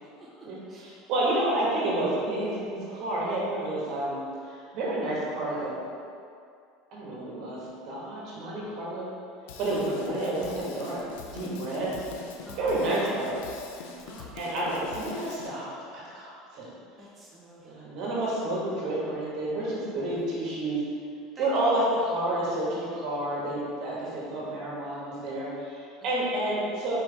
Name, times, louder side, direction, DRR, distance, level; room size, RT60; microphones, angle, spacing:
voice 1, 0.2-1.0 10.0-10.1 12.4-12.7 14.1-14.3 17.0-17.7 21.3-21.8 26.0-26.2, right 1 dB, 20° right, -6 dB, 0.7 m, -46 dB
voice 2, 1.1-5.8 6.9-9.1 9.6-11.0 11.3-11.9 12.6-13.5 14.3-15.7 15.9-16.7 17.6-20.8 21.4-26.9, right 1 dB, 60° right, -6 dB, 1.4 m, -30 dB
Drum kit / Drum, 9.5-15.5, left 4 dB, 85° left, 0.4 m, -43 dB
4.4 x 3.3 x 3.3 m, 2.3 s
supercardioid pair, 120°, 0 cm